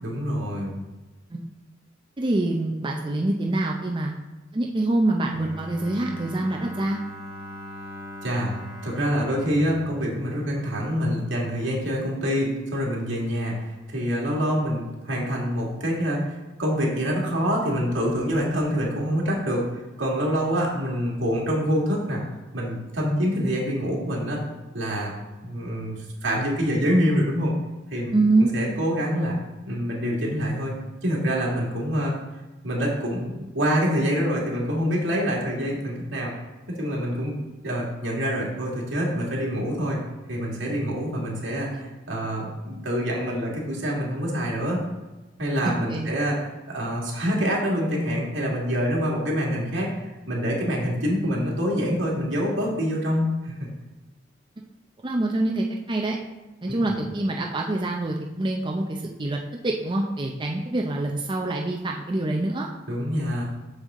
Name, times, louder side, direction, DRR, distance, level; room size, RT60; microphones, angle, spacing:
voice 1, 0.0-0.7 8.2-8.5 8.8-19.7 20.0-22.2 22.5-24.4 24.7-25.1 25.4-27.5 27.9-28.1 28.4-29.4 29.7-30.8 31.0-32.1 32.6-36.3 36.7-37.3 37.6-40.0 40.3-44.8 45.4-46.4 46.7-53.7 56.7-56.8 62.9-63.4, equal, 80° right, -3 dB, 2.1 m, -26 dB
voice 2, 2.2-4.1 4.5-7.0 28.1-28.5 45.6-46.1 55.0-56.2 56.6-62.7, right 2 dB, 25° right, 0 dB, 0.5 m, -25 dB
Bowed string instrument, 5.3-11.2, equal, 50° left, 1.3 m, -40 dB
6.8 x 6.4 x 3.7 m, 1.1 s
head